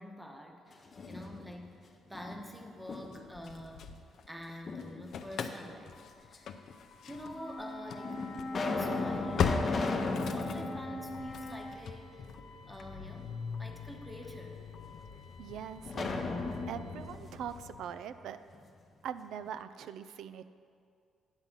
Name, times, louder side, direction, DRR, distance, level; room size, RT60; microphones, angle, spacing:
voice 1, 0.0-3.9 4.3-6.6 7.1-14.6, equal, 5° right, 2 dB, 1.0 m, -47 dB
sound 1, 0.7-1.7 2.1-3.4 4.7-5.5 6.3-6.4 7.3-7.4 8.0-12.1 12.4-12.5 15.8-18.6, left 3 dB, 40° left, 0.8 m, -37 dB
Engine starting / Slam, 3.1-4.5 4.8-17.8, left 6 dB, 65° left, 0.5 m, -40 dB
Wind instrument woodwind instrument, 7.3-11.8, left 1 dB, 90° left, 1.0 m, -42 dB
voice 2, 15.4-16.1 16.7-18.4 19.0-20.4, right 8 dB, 75° right, 12 dB, 0.3 m, -42 dB
9.7 x 4.0 x 7.3 m, 2.2 s
cardioid pair, 95°, 0 cm